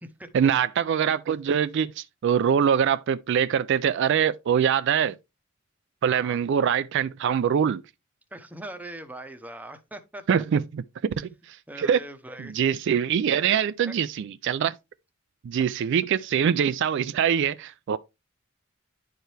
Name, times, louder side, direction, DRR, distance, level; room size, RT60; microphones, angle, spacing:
voice 1, 0.3-5.2 6.0-7.8 10.3-12.0 12.5-14.7 15.4-18.0, right 8 dB, 55° right, 0.3 m, -24 dB
voice 2, 6.1-6.4 8.3-10.2 11.7-12.6 13.8-13.9, right 1 dB, 10° right, 0.8 m, -41 dB
10.5 x 4.6 x 3.2 m
head